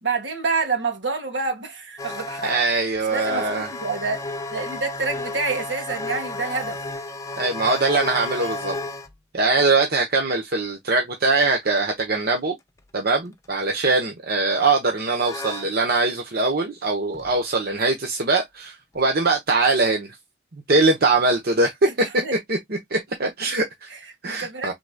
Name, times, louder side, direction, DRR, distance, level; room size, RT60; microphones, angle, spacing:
voice 1, 0.0-2.5 3.1-6.8 21.9-22.4 23.9-24.7, right 4 dB, 75° right, 1.8 m, -28 dB
sound 1, 2.0-9.1 13.4-13.7 15.2-15.7 17.1-17.3 18.9-19.0, left 2 dB, 20° left, 0.7 m, -33 dB
voice 2, 2.4-3.7 7.4-8.7 9.3-12.5 12.9-20.2 20.5-21.7 22.5-22.6 22.9-23.9 24.2-24.7, right 3 dB, 55° right, 1.0 m, -22 dB
4.8 x 3.9 x 2.2 m
head